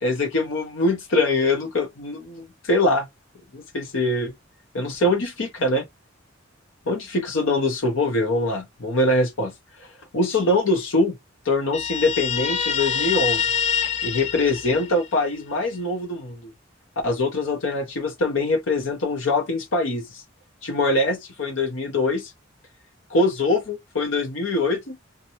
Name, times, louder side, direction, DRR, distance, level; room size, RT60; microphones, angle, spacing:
voice 1, 0.0-3.1 3.5-4.3 4.7-5.8 6.9-9.5 10.1-11.2 11.4-13.5 14.0-16.5 17.0-20.2 20.6-22.3 23.1-25.0, left 2 dB, 85° left, 0.7 m, -23 dB
Guitar, 11.7-15.3, left 8 dB, 35° left, 0.3 m, -25 dB
2.6 x 2.2 x 2.8 m
head